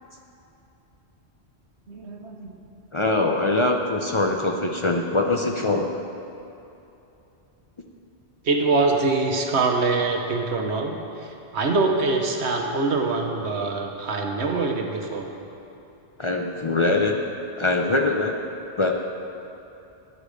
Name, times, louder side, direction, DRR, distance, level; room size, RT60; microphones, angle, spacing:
voice 1, 1.9-2.6 8.4-15.3, right 3 dB, 85° right, 3 dB, 1.3 m, -24 dB
voice 2, 2.9-5.9 16.2-17.2 17.6-18.4 18.8-18.9, left 2 dB, 35° left, 2 dB, 0.6 m, -22 dB
10.0 x 8.3 x 6.5 m, 2.8 s
omnidirectional pair, 1.1 m